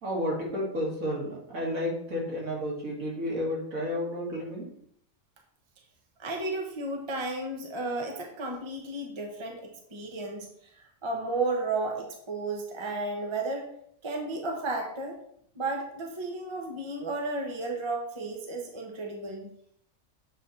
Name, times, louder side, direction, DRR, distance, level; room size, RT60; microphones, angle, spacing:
voice 1, 0.0-4.7, left 1 dB, 75° right, -3 dB, 2.4 m, -31 dB
voice 2, 6.2-13.7 14.0-15.2 15.5-19.5, right 2 dB, 25° right, 1 dB, 0.9 m, -33 dB
7.4 x 4.1 x 4.1 m, 0.67 s
omnidirectional pair, 1.5 m